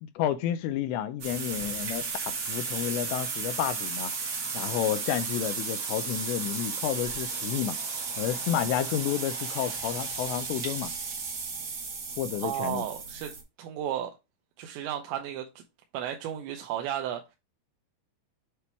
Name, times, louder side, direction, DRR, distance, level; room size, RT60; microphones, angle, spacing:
voice 1, 0.0-4.1 4.5-7.8 8.2-10.9 12.2-12.8, left 11 dB, 85° left, 2.6 m, -31 dB
sound 1, 1.2-13.4, right 4 dB, 55° right, 1.9 m, -34 dB
voice 2, 12.4-13.3 13.6-14.1 14.6-15.6 15.9-17.4, right 11 dB, 80° right, 2.9 m, -33 dB
8.3 x 2.9 x 4.4 m
omnidirectional pair, 5.3 m